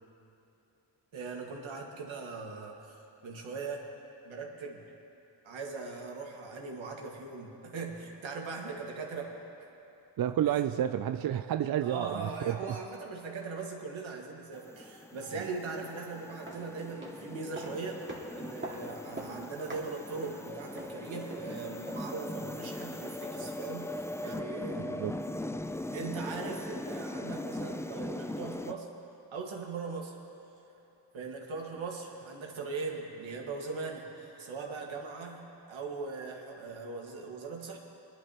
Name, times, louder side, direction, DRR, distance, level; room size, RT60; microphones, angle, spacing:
voice 1, 1.1-3.9 4.2-4.8 5.4-9.3 10.4-10.5 11.8-18.0 18.3-25.0 25.9-28.9 29.3-30.1 31.1-37.8, right 4 dB, 75° right, 0 dB, 1.9 m, -40 dB
voice 2, 10.2-12.6 24.9-25.1, right 10 dB, 50° right, 9 dB, 0.4 m, -30 dB
sound 1, 14.5-28.7, left 1 dB, 5° left, 0.4 m, -40 dB
sound 2, 16.3-22.2 22.5-22.6, right 1 dB, 25° right, 2.2 m, -46 dB
21.0 x 11.5 x 3.0 m, 3.0 s
cardioid pair, 55°, 47 cm